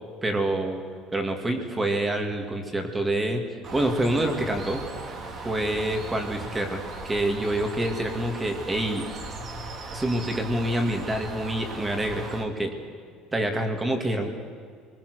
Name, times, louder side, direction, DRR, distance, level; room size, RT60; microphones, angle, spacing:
voice 1, 0.2-0.8 1.1-3.4 3.7-4.8 5.4-9.1 9.9-12.7 13.3-14.3, right 1 dB, 10° right, 5 dB, 2.5 m, -27 dB
Bird, 3.6-12.4, right 3 dB, 35° right, 2.5 m, -38 dB
26.5 x 21.0 x 6.5 m, 2.2 s
cardioid pair, 155°, 0 cm